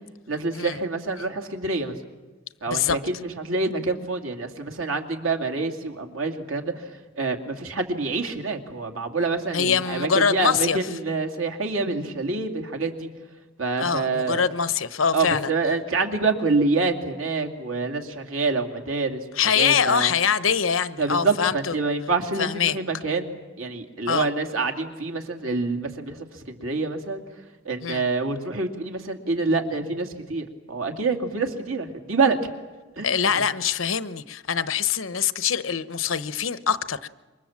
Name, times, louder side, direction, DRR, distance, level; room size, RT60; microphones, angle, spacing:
voice 1, 0.3-1.9 2.6-13.1 13.6-14.4 15.1-19.2 19.6-20.1 21.0-27.2 27.6-32.5 33.0-33.4, right 3 dB, 85° right, 2.7 m, -27 dB
voice 2, 2.7-3.0 9.5-10.8 13.8-15.5 19.4-21.7 22.4-22.8 24.1-24.3 27.8-28.0 33.0-37.1, left 7 dB, 75° left, 0.9 m, -24 dB
27.5 x 24.0 x 7.4 m
head